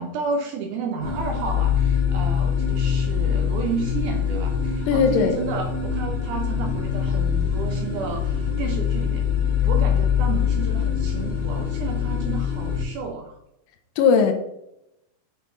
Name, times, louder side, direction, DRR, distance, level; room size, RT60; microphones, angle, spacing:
voice 1, 0.0-9.3 9.6-13.4, right 4 dB, 80° right, 3 dB, 1.9 m, -31 dB
sound 1, 1.0-12.8, left 8 dB, 60° left, 3.3 m, -24 dB
voice 2, 4.9-5.4 14.0-14.3, left 6 dB, 80° left, 6 dB, 2.4 m, -18 dB
8.8 x 3.9 x 3.7 m, 0.83 s
omnidirectional pair, 4.2 m